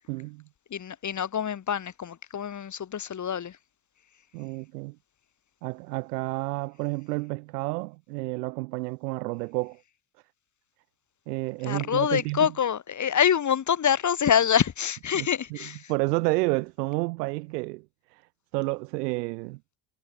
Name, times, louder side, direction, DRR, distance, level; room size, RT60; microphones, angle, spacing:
voice 1, 0.1-0.4 4.3-5.0 5.6-9.8 11.3-12.5 15.2-15.3 15.9-17.8 18.1-18.2 18.5-19.6, right 24 dB, 85° right, 0.8 m, -30 dB
voice 2, 0.7-3.6 11.6-15.9, left 8 dB, 40° left, 2.2 m, -26 dB
hypercardioid pair, 70°, 46 cm